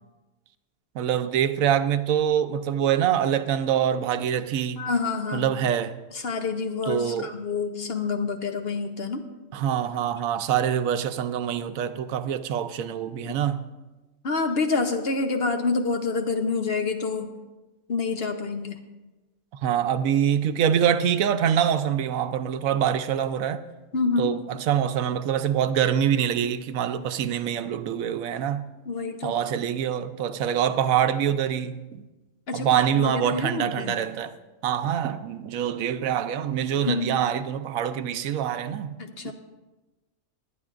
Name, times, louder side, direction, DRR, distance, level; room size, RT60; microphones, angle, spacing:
voice 1, 0.9-4.9 5.3-6.0 6.9-7.3 9.5-13.6 19.6-23.6 24.2-28.7 29.2-32.0 32.5-34.4 34.6-39.0 39.2-39.3, right 9 dB, 85° right, 1.1 m, -25 dB
voice 2, 4.8-5.5 6.1-9.2 13.2-13.4 14.2-17.3 17.9-18.8 23.9-24.4 28.9-29.3 32.5-33.9 36.8-37.2 39.0-39.3, left 4 dB, 50° left, 1.0 m, -27 dB
20.5 x 10.0 x 2.5 m
omnidirectional pair, 1.4 m